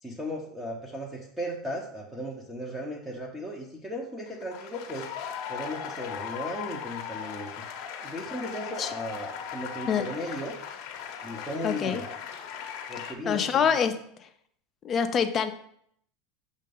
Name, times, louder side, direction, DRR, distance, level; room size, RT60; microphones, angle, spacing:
voice 1, 0.0-5.1 5.5-7.5 8.0-10.6 11.2-12.0 12.9-13.7, equal, 5° right, -2 dB, 0.9 m, -36 dB
sound 1, 4.3-13.1, left 7 dB, 60° left, 0.8 m, -38 dB
voice 2, 11.6-12.0 13.3-14.3 14.8-15.5, left 7 dB, 30° left, 7 dB, 0.6 m, -26 dB
6.5 x 2.7 x 5.4 m, 0.68 s
supercardioid pair, 125°, 0 cm